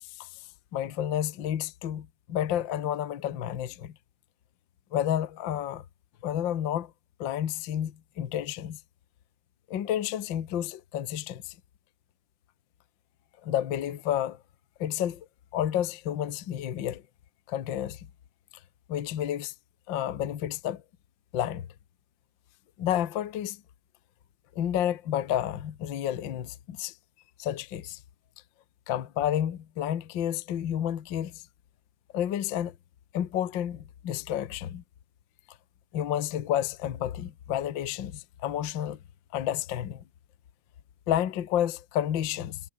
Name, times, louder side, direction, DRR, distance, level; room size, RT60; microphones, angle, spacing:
voice 1, 0.7-3.9 4.9-5.8 6.2-6.9 7.2-8.8 9.7-11.5 13.4-14.4 14.8-15.2 15.5-17.0 17.5-18.1 18.9-19.5 19.9-20.8 21.3-21.7 22.8-23.6 24.5-26.9 27.4-28.0 28.9-31.4 32.1-32.7 33.1-34.8 35.9-39.0 39.3-40.0 41.1-42.6, left 11 dB, 75° left, 1.0 m, -30 dB
omnidirectional pair, 4.2 m